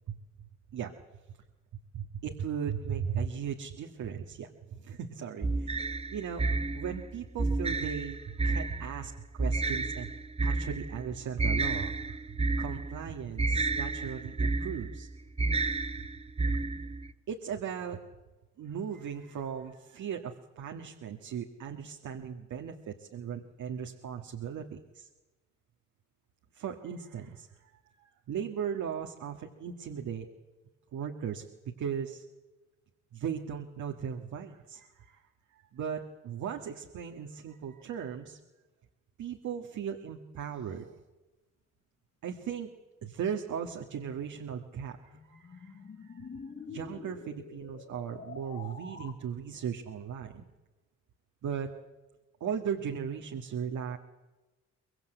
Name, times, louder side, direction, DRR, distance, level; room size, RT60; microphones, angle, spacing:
voice 1, 1.9-5.8 6.1-6.5 6.7-10.1 10.4-11.9 12.3-15.1 16.5-16.6 17.3-18.0 18.6-25.1 26.5-30.3 30.9-31.4 31.8-32.2 33.1-35.2 35.5-38.4 39.2-41.0 42.2-42.7 43.0-46.4 46.7-50.4 51.4-51.7 52.4-54.0, right 7 dB, 70° right, 3 dB, 1.8 m, -37 dB
sound 1, 5.4-17.1, right 3 dB, 20° right, 1.1 m, -31 dB
sound 2, 44.2-49.1, left 5 dB, 50° left, 4.2 m, -46 dB
23.5 x 22.0 x 8.0 m, 1.2 s
cardioid pair, 90°, 30 cm